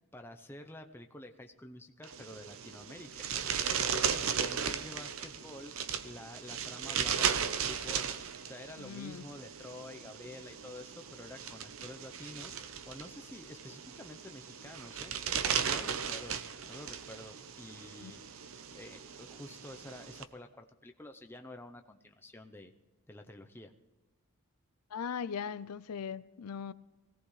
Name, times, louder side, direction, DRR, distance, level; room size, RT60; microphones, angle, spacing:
voice 1, 0.1-5.7 6.0-8.1 8.4-16.4 16.6-18.2 18.7-22.7 23.1-23.7, left 1 dB, 10° left, 0.7 m, -49 dB
sound 1, 2.0-20.2, right 7 dB, 65° right, 0.8 m, -36 dB
voice 2, 8.8-9.3 18.0-18.1 24.9-26.7, left 7 dB, 85° left, 0.4 m, -39 dB
21.5 x 17.0 x 3.2 m
head